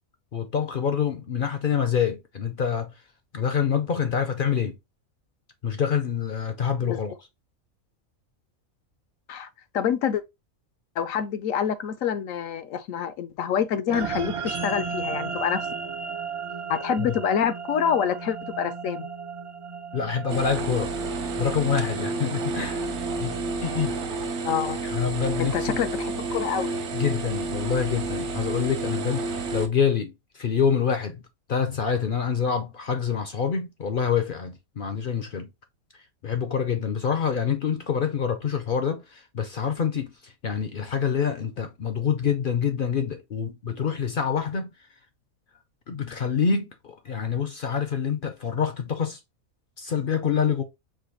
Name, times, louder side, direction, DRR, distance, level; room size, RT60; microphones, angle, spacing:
voice 1, 0.3-2.9 3.3-4.8 5.6-7.1 17.0-17.2 19.9-20.9 21.4-22.9 23.2-24.0 24.8-25.8 26.9-31.2 31.5-35.5 36.2-44.7 45.9-49.2 49.8-50.6, left 7 dB, 55° left, 0.6 m, -26 dB
voice 2, 9.7-10.2 11.0-15.7 16.7-19.1 24.4-24.8 25.4-26.7, left 8 dB, 75° left, 1.0 m, -27 dB
sound 1, 13.9-24.5, right 5 dB, 40° right, 0.5 m, -35 dB
sound 2, 20.3-29.7, right 3 dB, 60° right, 1.0 m, -30 dB
5.0 x 2.2 x 3.8 m
omnidirectional pair, 1.4 m